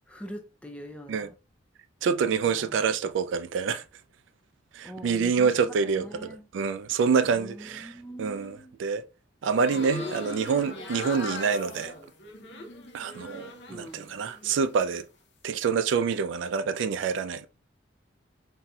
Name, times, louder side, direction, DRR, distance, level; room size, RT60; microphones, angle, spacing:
voice 1, 0.1-1.3 2.4-2.7 4.8-6.5 7.3-8.8 13.7-14.2, equal, 5° left, 0.3 m, -43 dB
voice 2, 2.0-3.8 4.7-9.0 9.4-11.9 12.9-15.1 15.4-17.5, right 5 dB, 75° right, 0.3 m, -27 dB
sound 1, 9.5-13.9 14.2-15.0, left 2 dB, 60° left, 0.6 m, -39 dB
4.0 x 2.7 x 2.2 m
head